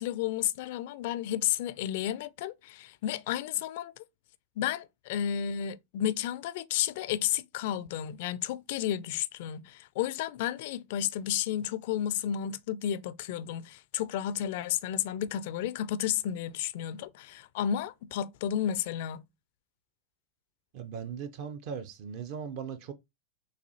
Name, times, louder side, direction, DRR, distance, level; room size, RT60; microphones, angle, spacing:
voice 1, 0.0-3.9 4.6-19.2, left 10 dB, 50° left, 0.3 m, -32 dB
voice 2, 20.7-22.9, right 7 dB, 45° right, 0.5 m, -38 dB
6.5 x 2.4 x 2.7 m
figure-of-eight pair, 90°, 0 cm